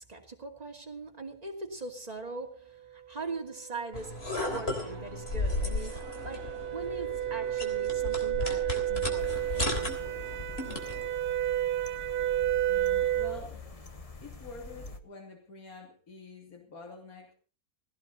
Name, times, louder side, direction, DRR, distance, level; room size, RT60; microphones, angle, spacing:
voice 1, 0.0-4.2 4.5-10.3, right 3 dB, 25° right, 2.7 m, -41 dB
sound 1, 3.5-13.4, right 13 dB, 75° right, 1.5 m, -32 dB
sound 2, 3.9-11.0, left 2 dB, 40° left, 3.7 m, -35 dB
sound 3, 9.2-15.0, left 4 dB, 25° left, 1.2 m, -45 dB
voice 2, 12.7-13.7 14.2-17.3, left 3 dB, 65° left, 3.5 m, -47 dB
18.0 x 17.0 x 4.2 m
omnidirectional pair, 1.6 m